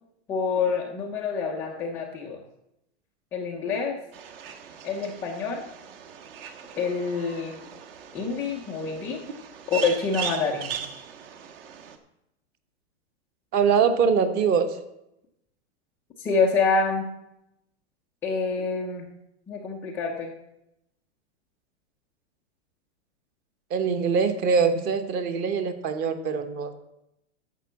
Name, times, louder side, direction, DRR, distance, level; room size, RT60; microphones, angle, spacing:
voice 1, 0.3-2.4 3.3-4.0 4.8-5.6 6.8-7.6 8.1-9.2 9.7-10.7 16.2-17.0 18.2-19.1 19.5-20.3, left 4 dB, 5° left, -3 dB, 0.3 m, -26 dB
sound 1, 4.1-12.0, right 8 dB, 50° right, 1.3 m, -39 dB
voice 2, 13.5-14.8 23.7-26.7, right 6 dB, 25° right, 9 dB, 0.9 m, -23 dB
11.0 x 6.8 x 7.1 m, 0.85 s
supercardioid pair, 160°, 36 cm